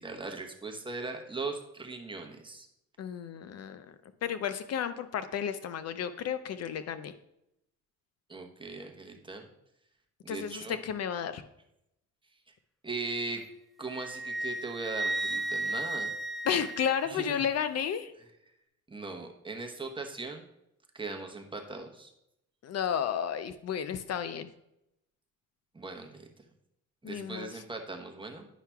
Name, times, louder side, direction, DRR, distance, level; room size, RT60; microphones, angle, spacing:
voice 1, 0.0-2.7 8.3-9.5 10.2-10.8 12.8-13.4 13.8-16.1 17.1-17.3 18.9-20.4 20.9-22.1 25.7-26.3 27.0-28.5, right 3 dB, 15° right, 3 dB, 0.9 m, -39 dB
voice 2, 3.0-3.9 4.2-7.1 10.3-11.4 16.5-18.1 22.6-24.5 27.0-27.6, left 8 dB, 55° left, 12 dB, 0.5 m, -32 dB
Wind instrument woodwind instrument, 13.9-17.4, right 2 dB, ahead, 0.4 m, -34 dB
10.0 x 5.6 x 2.3 m, 0.83 s
cardioid pair, 90°, 30 cm